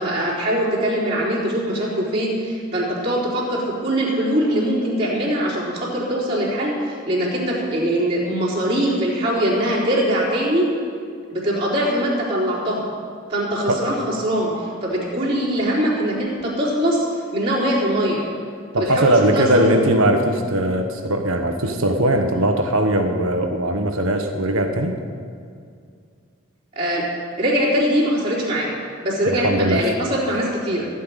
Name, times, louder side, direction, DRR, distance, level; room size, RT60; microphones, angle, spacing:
voice 1, 0.0-10.6 11.3-12.9 13.3-17.1 17.3-18.3 18.7-19.6 26.8-27.1 27.4-30.9, equal, 30° right, -9 dB, 3.7 m, -22 dB
voice 2, 18.7-25.0 29.3-29.9, right 1 dB, 80° right, 5 dB, 1.2 m, -20 dB
15.5 x 5.6 x 9.1 m, 2.3 s
head